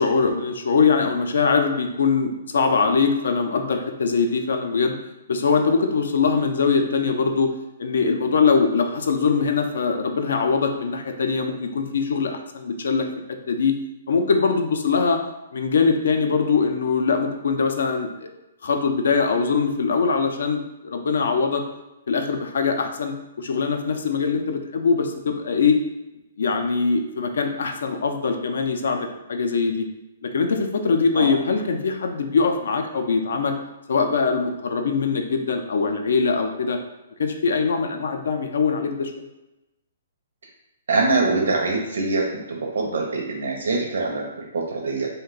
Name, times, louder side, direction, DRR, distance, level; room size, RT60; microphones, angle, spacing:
voice 1, 0.0-4.9 5.3-7.5 7.8-13.8 14.1-15.2 15.5-18.1 18.6-21.7 22.1-25.8 26.4-29.9 30.2-33.6 33.9-36.8 37.2-39.3, left 5 dB, 70° left, 5 dB, 0.4 m, -22 dB
voice 2, 40.9-45.1, right 3 dB, 80° right, -1 dB, 0.5 m, -24 dB
2.6 x 2.1 x 3.7 m, 0.98 s
hypercardioid pair, 175°, 0 cm